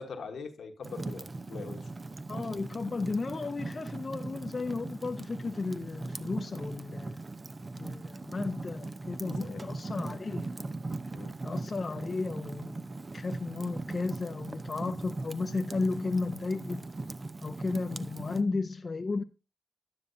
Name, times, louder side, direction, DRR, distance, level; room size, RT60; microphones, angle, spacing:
voice 1, 0.0-1.9 9.1-9.6 11.1-11.4, left 4 dB, 80° left, 1.2 m, -43 dB
Fire, 0.8-18.4, right 3 dB, 45° right, 0.7 m, -39 dB
voice 2, 2.3-7.2 7.8-10.5 11.4-12.9 13.1-16.9 17.4-19.2, left 3 dB, 50° left, 0.5 m, -34 dB
10.5 x 9.7 x 2.7 m
supercardioid pair, 40°, 0 cm